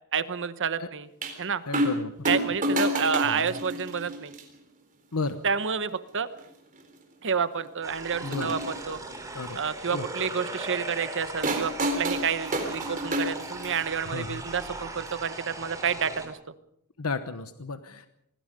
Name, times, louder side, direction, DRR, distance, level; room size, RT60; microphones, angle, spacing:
voice 1, 0.1-1.1 1.4-1.6 2.3-4.3 5.4-6.3 7.2-9.0 9.5-16.4, right 6 dB, 60° right, 13 dB, 1.2 m, -29 dB
sound 1, 1.2-1.4 1.7-2.0 2.3-4.4 5.3-5.4 6.4-6.5 6.8-6.9 8.1-8.7 11.4-13.8 15.1-15.2, equal, 40° right, 3.8 m, -29 dB
voice 2, 1.7-2.3 3.2-3.4 5.1-5.4 8.2-8.6 9.3-9.6 9.9-10.0 14.1-14.4 17.0-18.1, left 3 dB, 75° left, 10 dB, 1.1 m, -33 dB
sound 2, 7.8-16.3, right 2 dB, 15° right, 3.6 m, -39 dB
25.5 x 20.0 x 5.3 m, 0.73 s
head